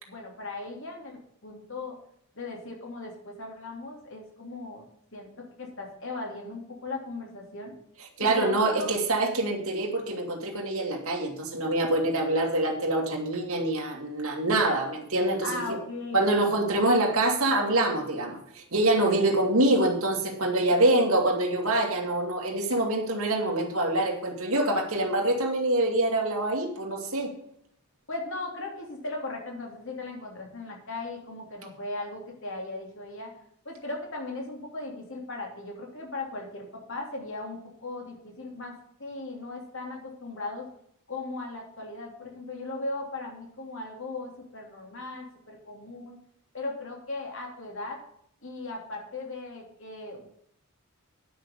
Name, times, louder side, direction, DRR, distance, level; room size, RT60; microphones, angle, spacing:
voice 1, 0.1-2.0 2.3-4.8 5.1-7.7 8.2-8.9 15.4-16.2 28.1-33.3 33.6-40.7 41.1-46.2 46.5-48.0 48.4-50.3, left 2 dB, 60° left, 1 dB, 3.1 m, -37 dB
voice 2, 8.2-15.8 16.1-27.3, right 2 dB, 70° right, -1 dB, 2.4 m, -25 dB
10.0 x 6.3 x 6.6 m, 0.70 s
head